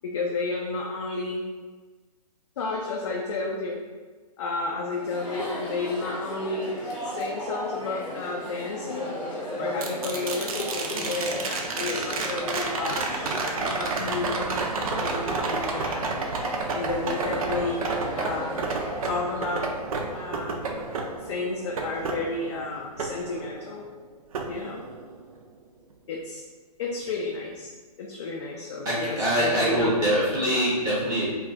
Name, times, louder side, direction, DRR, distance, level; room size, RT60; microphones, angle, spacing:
voice 1, 0.0-1.4 2.6-3.8 4.4-6.8 7.0-9.1 9.6-14.5 15.0-16.1 16.7-18.6 19.0-19.7 20.1-20.6 21.2-23.9 24.5-24.8 26.1-26.4 26.8-27.7 28.0-29.9, left 3 dB, 45° left, -1 dB, 0.4 m, -32 dB
Chatter, 4.9-19.0, equal, 20° left, 0.8 m, -35 dB
sound 1, 9.8-23.9 24.3-25.4 27.6-27.7, right 3 dB, 60° right, 0.5 m, -31 dB
voice 2, 28.8-31.3, right 1 dB, 15° right, -7 dB, 0.6 m, -24 dB
2.3 x 2.3 x 3.8 m, 1.3 s
hypercardioid pair, 140°, 20 cm